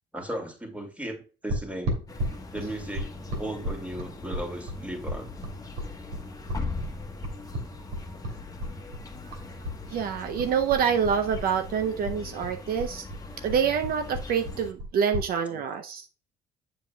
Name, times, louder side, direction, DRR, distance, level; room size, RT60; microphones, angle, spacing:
voice 1, 0.1-2.0 2.5-3.1 3.4-5.3 15.5-15.6, right 1 dB, 10° right, 4 dB, 2.1 m, -36 dB
sound 1, 1.5-9.8 10.1-11.7 12.0-15.3, equal, 85° right, 2.9 m, -34 dB
sound 2, 2.1-14.7, left 3 dB, 20° left, 1.3 m, -40 dB
voice 2, 9.9-13.0 13.4-16.1, right 7 dB, 60° right, 7 dB, 0.6 m, -26 dB
7.4 x 7.2 x 2.3 m, 0.35 s
cardioid pair, 110°, 17 cm